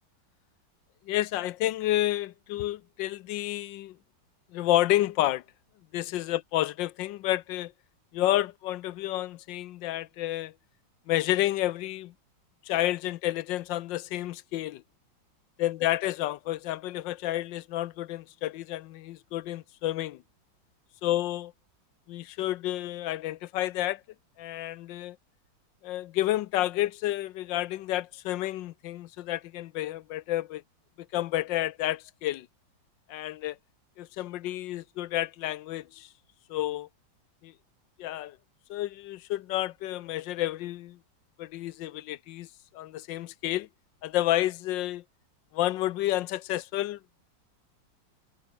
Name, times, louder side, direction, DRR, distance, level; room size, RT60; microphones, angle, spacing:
voice 1, 1.1-4.0 4.5-5.4 5.9-7.7 8.1-10.5 11.1-12.1 12.6-14.8 15.6-20.2 21.0-21.5 22.1-24.0 24.4-25.2 25.8-30.6 31.1-32.5 33.1-33.6 34.0-36.1 36.5-36.9 37.4-37.5 38.0-38.4 38.7-41.0 41.4-42.5 42.7-43.7 44.0-45.0 45.5-47.0, left 14 dB, 80° left, 1.3 m, -30 dB
omnidirectional pair, 2.1 m